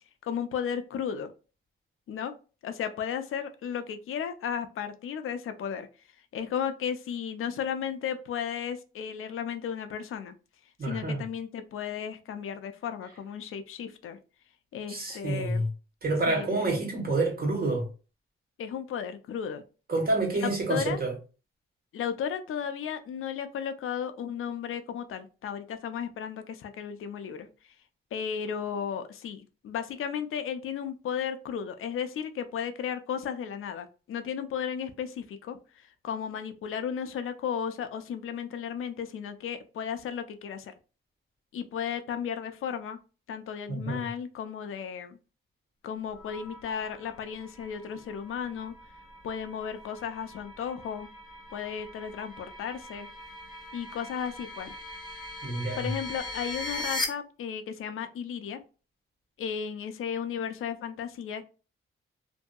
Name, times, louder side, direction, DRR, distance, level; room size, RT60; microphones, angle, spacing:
voice 1, 0.2-1.3 2.1-2.3 2.6-5.9 6.3-10.3 10.8-14.2 14.7-15.6 16.3-16.5 18.6-19.6 20.4-21.0 21.9-27.5 28.1-40.7 41.5-43.0 43.3-45.2 45.8-48.7 49.2-51.1 51.5-53.1 53.7-54.7 55.8-58.6 59.4-61.4, left 8 dB, 80° left, 0.5 m, -34 dB
voice 2, 10.8-11.2 14.9-15.7 16.0-17.9 19.9-21.2 43.7-44.1 55.4-55.9, right 2 dB, 45° right, 1.2 m, -28 dB
sound 1, 46.1-57.0, left 2 dB, ahead, 0.9 m, -41 dB
2.6 x 2.6 x 2.3 m
cardioid pair, 90°, 21 cm